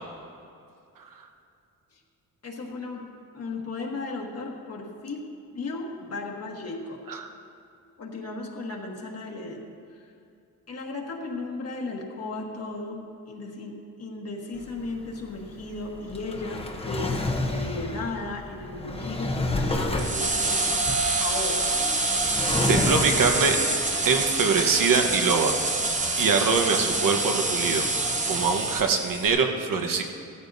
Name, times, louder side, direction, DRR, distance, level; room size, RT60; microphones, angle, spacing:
voice 1, 2.4-3.1 3.3-5.3 5.5-7.0 8.0-9.6 9.9-10.1 10.7-13.0 13.3-20.8 21.1-21.7 23.1-23.5, left 3 dB, 50° left, -1 dB, 1.4 m, -35 dB
Drawer open or close, 14.6-23.8, left 2 dB, 20° left, 0.8 m, -30 dB
sound 1, 20.0-29.3, right 3 dB, 20° right, 0.8 m, -26 dB
voice 2, 22.7-23.6 24.0-25.5 26.2-27.8 28.3-30.0, right 5 dB, 85° right, 4 dB, 1.2 m, -23 dB
16.0 x 13.5 x 2.7 m, 2.4 s
wide cardioid pair, 170°, 33 cm